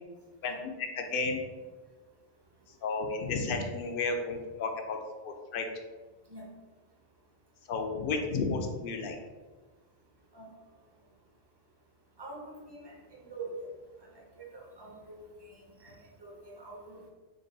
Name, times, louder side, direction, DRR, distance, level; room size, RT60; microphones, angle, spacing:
voice 1, 0.4-1.4 2.7-5.0 5.2-5.7 7.7-9.2, left 4 dB, 65° left, 4 dB, 0.7 m, -32 dB
voice 2, 12.2-12.9 13.3-13.5 14.5-15.3 16.2-16.3 16.6-17.1, right 3 dB, 30° right, -1 dB, 0.6 m, -44 dB
3.9 x 2.2 x 3.9 m, 1.3 s
omnidirectional pair, 1.1 m